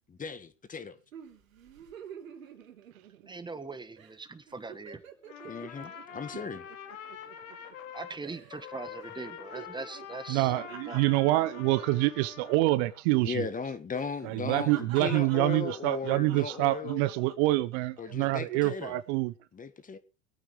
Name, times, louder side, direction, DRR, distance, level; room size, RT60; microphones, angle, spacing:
voice 1, 0.1-1.0 5.4-6.7 13.2-17.0 18.0-19.0 19.5-20.0, left 5 dB, 20° left, 1.6 m, -37 dB
sound 1, 1.1-3.6 4.0-4.2 4.5-7.9 8.2-8.6 8.9-13.0 13.3-13.5 13.9-18.0 18.5-18.9, right 8 dB, 85° right, 3.2 m, -48 dB
voice 2, 3.3-5.0 7.9-10.5 10.9-11.1, right 3 dB, 10° right, 1.5 m, -41 dB
Trumpet, 5.2-8.2 8.5-12.6, left 8 dB, 75° left, 3.1 m, -45 dB
voice 3, 10.3-13.4 14.2-19.3, right 18 dB, 55° right, 0.9 m, -26 dB
24.5 x 8.9 x 3.2 m
hypercardioid pair, 95°, 40 cm